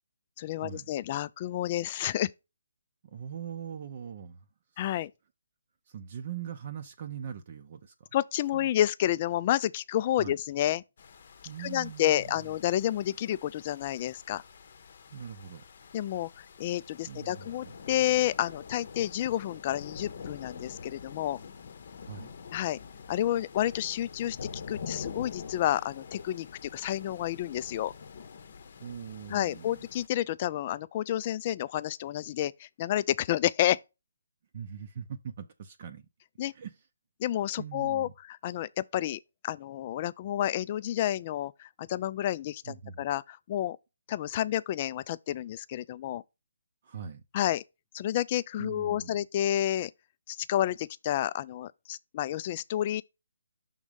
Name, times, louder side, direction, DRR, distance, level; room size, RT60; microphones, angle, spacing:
voice 1, 0.4-2.3 4.8-5.1 8.1-10.8 11.6-14.4 15.9-21.4 22.5-22.8 23.1-27.9 29.3-33.8 36.4-36.5 37.2-43.8 44.1-46.2 47.3-47.6 47.9-49.9 50.3-53.0, left 12 dB, 30° left, 0.3 m, -30 dB
voice 2, 3.1-4.4 4.7-5.0 5.9-8.1 8.5-8.7 10.2-10.4 11.4-12.5 15.1-15.6 17.1-17.8 22.0-22.3 28.8-29.9 34.5-36.0 36.5-36.7 37.6-38.1 42.7-43.0 46.8-47.2 48.6-49.2, right 8 dB, 45° right, 0.6 m, -41 dB
sound 1, 11.0-30.1, left 6 dB, 50° left, 0.8 m, -46 dB
6.2 x 3.6 x 5.1 m
hypercardioid pair, 155°, 0 cm